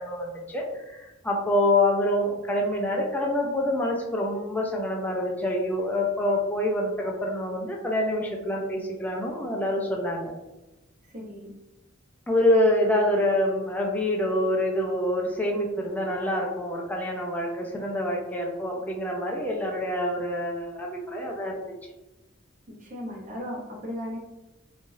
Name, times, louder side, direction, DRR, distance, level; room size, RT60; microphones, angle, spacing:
voice 1, 0.0-10.3 12.3-21.5, left 1 dB, 10° left, -1 dB, 0.5 m, -26 dB
voice 2, 11.0-11.5 22.8-24.2, left 1 dB, 40° right, -2 dB, 0.8 m, -36 dB
3.2 x 2.4 x 2.6 m, 1.0 s
head